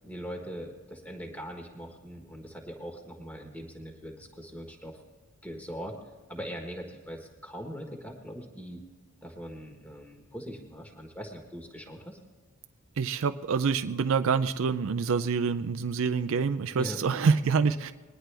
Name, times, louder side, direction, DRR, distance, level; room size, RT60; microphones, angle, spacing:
voice 1, 0.0-5.0 5.4-6.0 6.3-8.8 9.2-12.2 16.7-17.0, equal, 5° left, 2 dB, 1.3 m, -41 dB
voice 2, 13.0-17.9, right 5 dB, 60° right, 10 dB, 0.4 m, -26 dB
21.0 x 10.5 x 3.4 m, 1.4 s
head